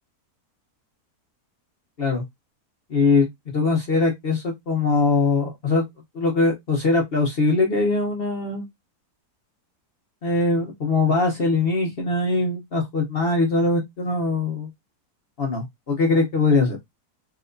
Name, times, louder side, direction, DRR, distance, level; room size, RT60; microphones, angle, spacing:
voice 1, 2.9-5.8 6.1-8.6 10.2-14.7 15.4-16.8, left 3 dB, 50° left, 0.8 m, -22 dB
3.3 x 2.9 x 2.5 m
omnidirectional pair, 1.7 m